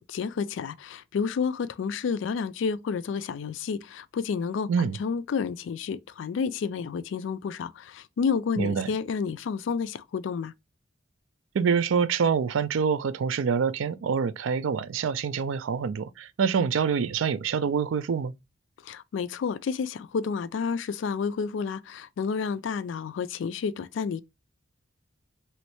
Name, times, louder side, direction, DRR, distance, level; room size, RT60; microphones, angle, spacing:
voice 1, 0.0-4.7 5.0-10.5 18.8-24.2, left 5 dB, 75° left, 0.3 m, -30 dB
voice 2, 8.6-8.9 11.5-18.3, right 6 dB, 85° right, 0.4 m, -26 dB
3.1 x 3.0 x 3.0 m
head